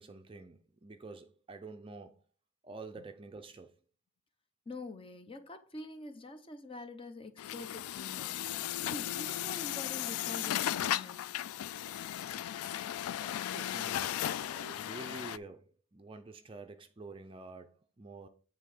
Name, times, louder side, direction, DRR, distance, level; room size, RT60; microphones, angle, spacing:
voice 1, 0.0-2.2 2.6-3.7 13.2-18.3, right 3 dB, 25° right, 0.4 m, -48 dB
voice 2, 4.7-8.4 8.8-11.3, left 2 dB, 25° left, 0.7 m, -46 dB
Truck, 7.4-15.4, left 12 dB, 85° left, 0.3 m, -36 dB
9.0 x 3.6 x 4.9 m
head